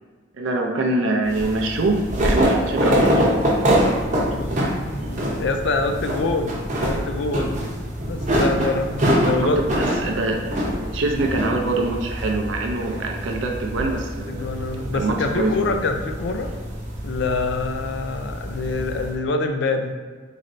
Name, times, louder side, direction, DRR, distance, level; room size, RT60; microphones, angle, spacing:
voice 1, 0.4-3.8 4.1-4.4 9.2-14.5 14.9-15.8, right 2 dB, 75° right, 2 dB, 0.5 m, -25 dB
sound 1, 1.2-19.1, equal, 40° right, 0.7 m, -25 dB
voice 2, 4.2-5.1 5.4-7.6 8.1-9.6 14.3-16.5 17.0-19.9, left 3 dB, 65° left, 5 dB, 0.4 m, -25 dB
4.2 x 3.1 x 2.6 m, 1.5 s
head